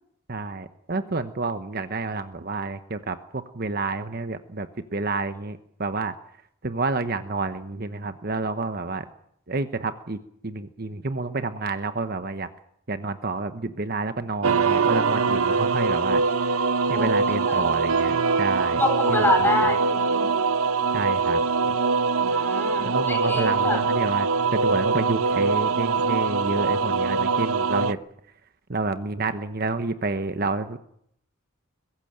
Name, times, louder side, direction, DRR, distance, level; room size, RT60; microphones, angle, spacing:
voice 1, 0.3-6.1 6.6-9.0 9.5-10.2 10.4-12.5 12.9-16.2 16.9-18.8 19.1-19.3 19.6-19.7 20.9-21.4 22.8-28.0 28.7-30.8, right 3 dB, 45° right, 10 dB, 1.0 m, -29 dB
sound 1, 14.4-27.9, right 4 dB, 80° right, 0.8 m, -23 dB
voice 2, 16.9-17.7 18.8-20.3 22.2-23.8, left 2 dB, 10° left, 4 dB, 4.4 m, -27 dB
22.5 x 14.5 x 9.1 m, 0.71 s
head